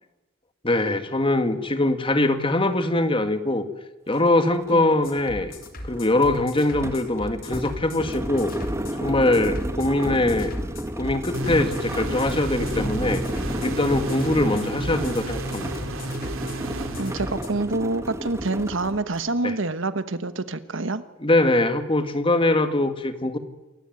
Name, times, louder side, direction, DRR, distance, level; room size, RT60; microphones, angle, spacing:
voice 1, 0.6-3.7 4.1-5.5 5.8-8.5 9.0-10.5 11.0-13.2 13.6-15.7 19.4-19.5 21.2-23.4, left 2 dB, 25° left, 9 dB, 2.0 m, -22 dB
sound 1, 4.1-4.2 4.6-19.3, equal, 15° right, 1.6 m, -32 dB
sound 2, 5.0-17.5, left 1 dB, 45° left, 3.6 m, -39 dB
sound 3, 11.3-17.8, right 2 dB, 85° right, 2.9 m, -33 dB
voice 2, 17.0-21.0, right 2 dB, 65° right, 13 dB, 1.3 m, -27 dB
28.0 x 15.5 x 9.4 m, 1.1 s
head